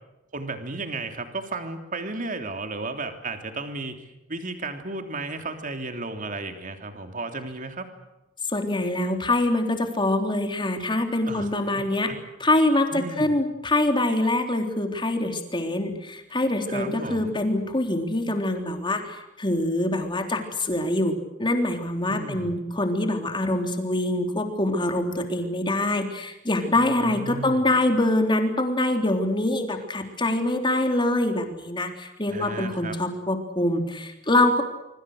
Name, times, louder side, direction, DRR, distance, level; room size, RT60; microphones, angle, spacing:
voice 1, 0.3-4.0 4.3-7.9 11.3-11.5 11.8-12.2 12.9-13.3 16.7-17.4 22.1-22.6 26.7-27.6 32.3-33.0, right 3 dB, 45° right, 6 dB, 3.2 m, -34 dB
voice 2, 8.5-12.1 12.4-34.6, left 1 dB, 25° left, 5 dB, 3.6 m, -24 dB
25.5 x 25.0 x 6.6 m, 0.95 s
head